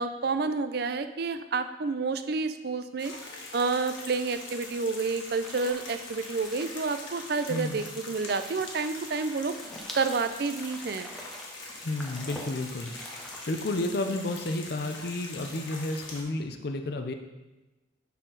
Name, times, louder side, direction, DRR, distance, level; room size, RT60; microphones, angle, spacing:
voice 1, 0.0-3.1 3.5-9.6 9.9-11.1, right 4 dB, 55° right, 10 dB, 0.4 m, -29 dB
sound 1, 3.0-16.2, left 2 dB, 80° left, 1.4 m, -43 dB
sound 2, 5.4-13.5, equal, ahead, 0.7 m, -46 dB
voice 2, 7.5-7.8 11.8-17.1, left 2 dB, 55° left, 5 dB, 0.5 m, -32 dB
10.0 x 4.2 x 3.9 m, 1.1 s
head